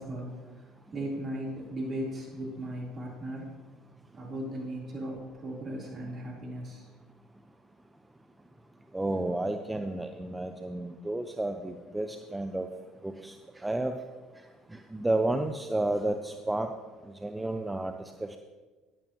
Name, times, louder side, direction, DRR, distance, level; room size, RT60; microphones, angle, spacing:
voice 1, 0.0-3.5 4.1-6.9, right 1 dB, 45° right, -3 dB, 3.9 m, -37 dB
voice 2, 8.9-12.7 13.0-14.0 14.7-16.7 17.1-18.4, right 2 dB, 10° right, 6 dB, 0.7 m, -31 dB
14.0 x 10.5 x 3.1 m, 1.3 s
hypercardioid pair, 60°, 0 cm